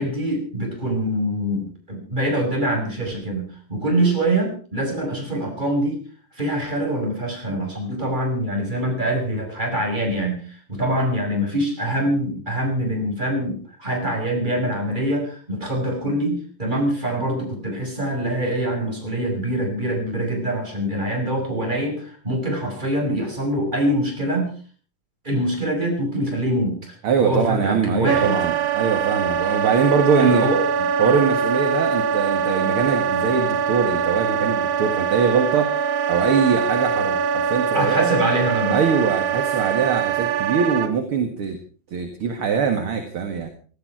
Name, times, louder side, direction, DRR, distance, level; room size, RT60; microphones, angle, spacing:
voice 1, 0.0-6.0 6.3-24.5 25.2-28.4 30.2-30.6 37.7-38.8, right 1 dB, 10° right, 1 dB, 5.6 m, -24 dB
voice 2, 27.0-30.5 31.0-35.7 36.1-38.1 38.7-41.6 41.9-43.5, right 6 dB, 45° right, 6 dB, 2.2 m, -22 dB
Wind instrument woodwind instrument, 28.1-40.9, right 7 dB, 90° right, 2.9 m, -23 dB
18.0 x 15.0 x 4.8 m, 0.40 s
omnidirectional pair, 4.0 m